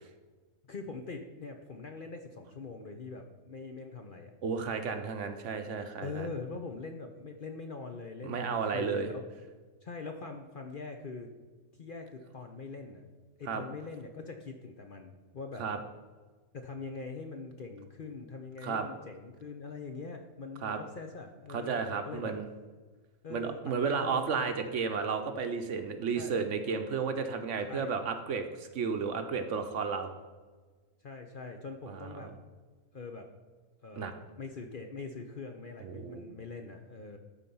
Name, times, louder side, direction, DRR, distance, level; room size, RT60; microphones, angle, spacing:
voice 1, 0.7-4.3 6.0-9.2 9.8-11.3 11.7-13.0 13.4-15.6 16.5-22.3 23.2-24.3 26.1-26.4 27.6-27.9 31.0-32.3 32.9-33.3 33.8-34.1 34.4-37.2, left 4 dB, 50° left, 4 dB, 0.7 m, -43 dB
voice 2, 4.4-6.3 8.2-9.1 13.5-13.6 15.6-15.8 18.6-18.9 20.6-20.8 21.5-22.4 23.3-30.1 31.9-32.3 34.0-34.1 35.8-36.3, right 5 dB, 65° right, 7 dB, 1.0 m, -33 dB
12.5 x 4.4 x 5.4 m, 1.4 s
omnidirectional pair, 1.5 m